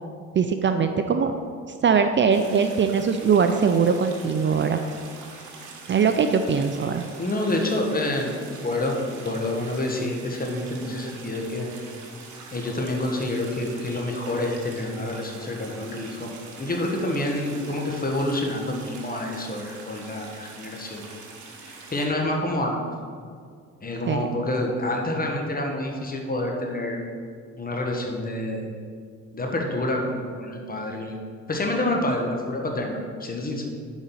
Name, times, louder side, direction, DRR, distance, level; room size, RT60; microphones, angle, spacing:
voice 1, 0.4-1.3 1.8-4.8 5.9-7.1 24.1-24.3, right 6 dB, 40° right, 7 dB, 0.5 m, -21 dB
sound 1, 2.3-22.1, right 4 dB, 75° right, 1.4 m, -43 dB
voice 2, 7.2-8.3 8.6-11.7 12.5-16.3 16.6-21.0 21.6-22.8 23.8-27.0 27.6-28.7 29.3-31.2 31.5-33.6, left 1 dB, 30° left, 1 dB, 1.5 m, -28 dB
7.1 x 5.2 x 5.5 m, 2.1 s
cardioid pair, 90°, 30 cm